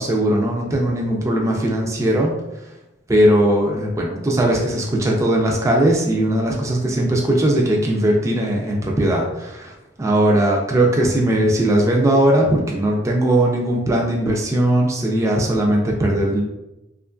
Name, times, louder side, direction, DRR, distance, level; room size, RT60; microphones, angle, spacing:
voice 1, 0.0-2.3 3.1-9.7 10.0-16.4, right 1 dB, 15° right, -1 dB, 0.3 m, -19 dB
2.8 x 2.4 x 2.2 m, 0.92 s
head